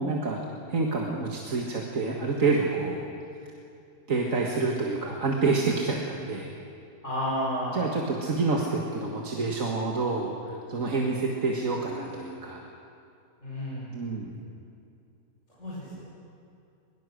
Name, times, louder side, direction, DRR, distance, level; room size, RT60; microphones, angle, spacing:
voice 1, 0.0-3.0 4.1-6.5 7.7-12.6 13.9-14.4, right 3 dB, 55° right, -1 dB, 2.1 m, -28 dB
voice 2, 7.0-7.8 13.4-13.9 15.6-16.0, equal, 45° left, -8 dB, 5.7 m, -31 dB
23.0 x 22.5 x 6.4 m, 2.6 s
omnidirectional pair, 1.8 m